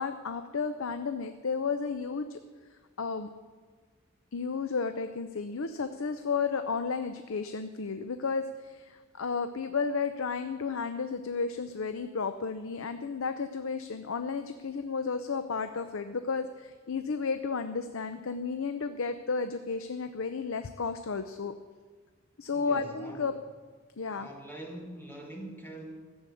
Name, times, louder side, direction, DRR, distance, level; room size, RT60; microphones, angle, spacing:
voice 1, 0.0-2.4 2.7-3.3 4.3-21.5 22.4-23.3 24.0-24.3, left 5 dB, 75° left, 9 dB, 0.6 m, -33 dB
voice 2, 22.5-23.4 24.1-26.0, right 1 dB, 10° left, 1 dB, 1.7 m, -44 dB
15.0 x 7.2 x 8.4 m, 1.5 s
head